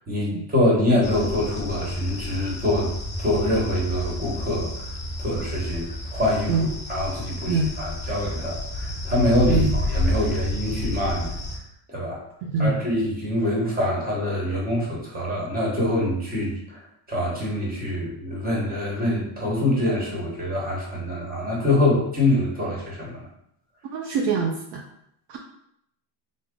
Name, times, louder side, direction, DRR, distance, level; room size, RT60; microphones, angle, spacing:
voice 1, 0.1-2.9 3.2-4.7 5.2-6.6 6.9-11.3 11.9-12.2 12.6-16.8 17.1-23.2, left 1 dB, 20° right, -3 dB, 1.1 m, -25 dB
sound 1, 1.0-11.6, left 1 dB, 15° left, 0.4 m, -30 dB
voice 2, 23.9-24.8 25.3-25.4, right 3 dB, 60° right, 0 dB, 0.5 m, -23 dB
3.4 x 2.1 x 3.7 m, 0.75 s
cardioid pair, 135°, 48 cm